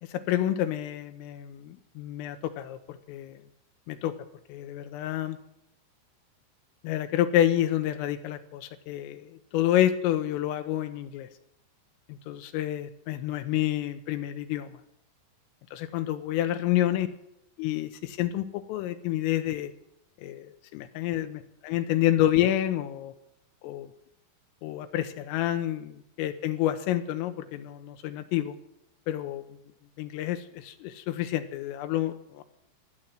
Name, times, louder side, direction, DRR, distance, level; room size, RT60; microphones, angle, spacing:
voice 1, 0.0-3.4 3.9-4.1 4.5-5.4 6.8-11.3 12.3-14.8 15.7-17.1 17.6-19.7 20.2-23.1 23.6-23.9 24.6-28.5 29.1-29.4 30.0-32.4, left 12 dB, 85° left, 9 dB, 3.5 m, -29 dB
16.0 x 11.0 x 7.6 m, 0.82 s
omnidirectional pair, 5.9 m